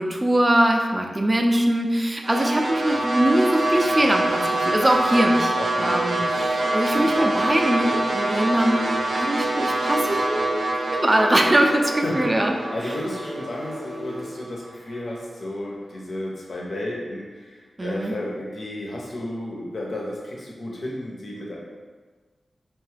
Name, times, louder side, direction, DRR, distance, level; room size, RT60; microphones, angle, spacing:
voice 1, 0.0-5.5 5.8-8.8 9.1-10.6 10.9-12.5 17.8-18.2, right 1 dB, 20° right, 2 dB, 0.3 m, -22 dB
sound 1, 2.2-14.5, right 2 dB, 80° right, 0.5 m, -25 dB
voice 2, 5.6-6.3 6.9-7.1 11.9-21.6, left 1 dB, 65° left, -3 dB, 0.6 m, -33 dB
sound 2, 6.1-14.5, equal, 30° left, 0.6 m, -38 dB
2.8 x 2.2 x 3.3 m, 1.4 s
wide cardioid pair, 95°, 0 cm